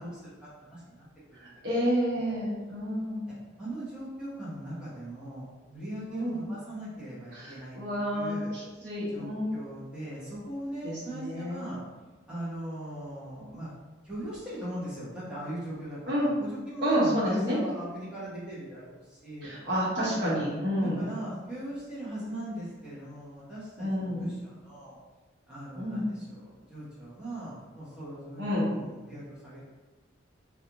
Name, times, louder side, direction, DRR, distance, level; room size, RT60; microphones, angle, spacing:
voice 1, 0.0-1.5 2.1-2.4 3.6-8.5 9.1-11.8 12.3-13.7 14.0-19.5 20.1-20.4 20.8-25.0 25.5-29.6, right 1 dB, 5° right, -11 dB, 0.8 m, -40 dB
voice 2, 1.3-3.3 6.1-6.4 7.3-9.5 10.8-11.7 16.1-16.3 16.8-17.6 19.4-21.0 23.8-24.3 25.7-26.0 28.4-28.7, equal, 65° right, -7 dB, 0.9 m, -29 dB
2.4 x 2.3 x 2.8 m, 1.3 s
head